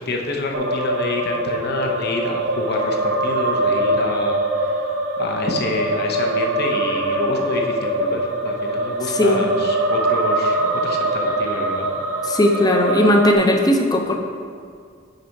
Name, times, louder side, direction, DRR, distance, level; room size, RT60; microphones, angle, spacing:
voice 1, 0.1-4.9 5.2-11.9, left 2 dB, 55° left, 1 dB, 0.8 m, -28 dB
sound 1, 0.5-13.3, right 1 dB, 80° right, 0.7 m, -23 dB
voice 2, 12.3-14.2, left 1 dB, 20° left, 3 dB, 0.5 m, -17 dB
6.7 x 5.2 x 4.5 m, 2.2 s
head